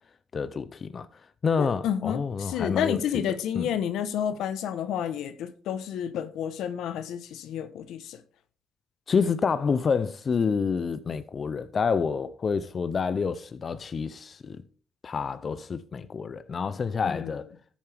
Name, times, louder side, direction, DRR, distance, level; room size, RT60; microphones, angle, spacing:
voice 1, 0.3-3.0 3.5-3.7 9.1-14.6 15.0-17.5, left 5 dB, 45° left, 0.5 m, -28 dB
voice 2, 1.6-8.2 17.0-17.3, left 9 dB, 85° left, 1.0 m, -30 dB
13.5 x 7.2 x 3.4 m
cardioid pair, 90°, 0 cm